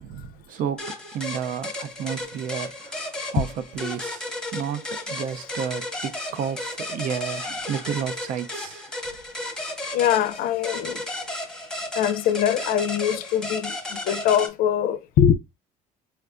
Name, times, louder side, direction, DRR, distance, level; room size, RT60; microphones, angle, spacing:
voice 1, 0.0-3.1 3.3-8.9, right 8 dB, 60° right, 0.4 m, -32 dB
sound 1, 0.8-14.5, left 1 dB, 5° left, 0.9 m, -34 dB
voice 2, 9.9-11.0 11.9-15.3, left 9 dB, 70° left, 0.4 m, -22 dB
4.4 x 2.2 x 2.4 m
cardioid pair, 130°, 16 cm